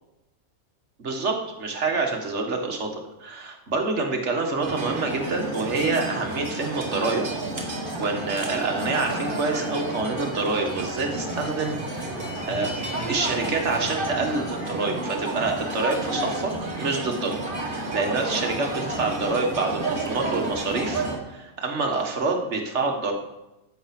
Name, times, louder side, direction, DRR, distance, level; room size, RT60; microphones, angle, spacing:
voice 1, 1.0-7.2 8.0-12.7 13.1-16.5 16.8-17.3 17.6-23.1, right 3 dB, 55° right, 2 dB, 1.9 m, -27 dB
sound 1, 4.6-21.2, right 2 dB, 35° right, 2.0 m, -31 dB
15.0 x 7.1 x 5.9 m, 0.98 s
omnidirectional pair, 1.5 m